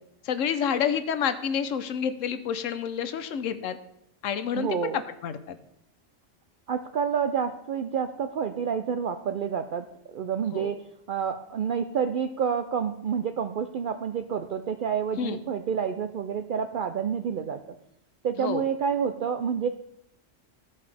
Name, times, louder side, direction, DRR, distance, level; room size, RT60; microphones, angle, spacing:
voice 1, 0.2-3.8 4.2-5.6 10.4-10.7 15.2-15.4 18.4-18.6, left 7 dB, 85° left, 11 dB, 1.1 m, -29 dB
voice 2, 4.5-5.0 6.7-10.8 11.1-17.6 18.2-19.7, right 7 dB, 65° right, 8 dB, 0.5 m, -29 dB
15.5 x 5.5 x 3.4 m, 0.80 s
omnidirectional pair, 1.3 m